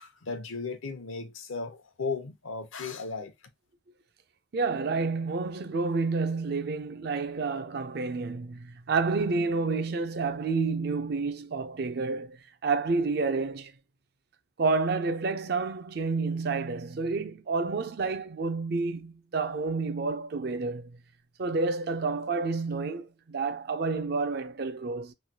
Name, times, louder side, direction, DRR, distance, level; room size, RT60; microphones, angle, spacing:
voice 1, 0.0-3.3, left 4 dB, 85° left, 0.8 m, -36 dB
voice 2, 4.5-12.4 12.6-13.7 14.6-21.0 21.4-25.1, right 4 dB, 55° right, 0.4 m, -29 dB
3.2 x 2.3 x 2.7 m
head